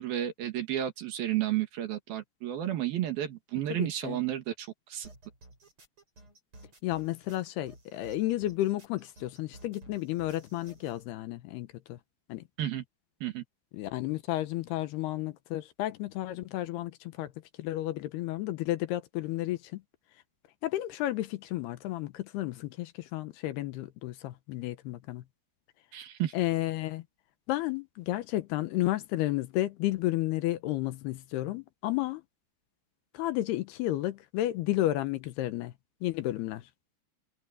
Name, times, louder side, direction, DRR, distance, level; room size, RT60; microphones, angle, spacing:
voice 1, 0.0-5.1 12.6-12.8 13.2-13.4 25.9-26.3, right 12 dB, 65° right, 3.5 m, -32 dB
voice 2, 3.7-4.2 6.8-12.0 12.3-12.4 13.7-17.3 17.6-19.8 20.6-25.2 26.3-27.0 27.5-32.2 33.1-35.7 36.0-36.7, left 15 dB, 80° left, 2.8 m, -32 dB
sound 1, 5.0-11.0, right 2 dB, 30° right, 8.7 m, -54 dB
omnidirectional pair, 4.9 m